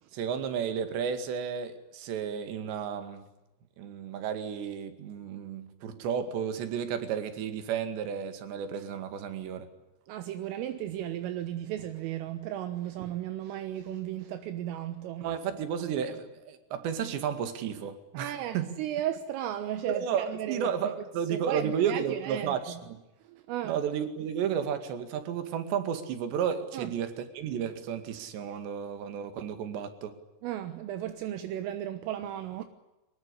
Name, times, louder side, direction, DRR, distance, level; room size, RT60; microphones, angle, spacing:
voice 1, 0.1-3.2 3.8-9.7 15.2-18.7 19.9-23.0 23.6-30.2, right 8 dB, 65° right, 4.2 m, -32 dB
voice 2, 10.1-15.3 18.2-20.9 21.3-22.6 23.2-23.8 26.7-26.9 30.4-32.6, right 11 dB, 80° right, 3.7 m, -35 dB
23.5 x 22.0 x 10.0 m
omnidirectional pair, 5.9 m